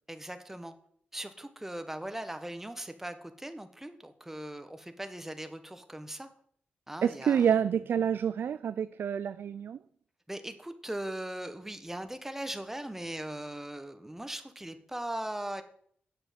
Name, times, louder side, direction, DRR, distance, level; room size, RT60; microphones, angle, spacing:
voice 1, 0.1-0.7 1.1-6.3 6.9-7.5 10.3-15.6, right 1 dB, 10° right, 9 dB, 1.3 m, -39 dB
voice 2, 7.0-9.8, right 8 dB, 75° right, 13 dB, 0.4 m, -28 dB
8.2 x 6.8 x 7.4 m, 0.63 s
cardioid pair, 70°, 4 cm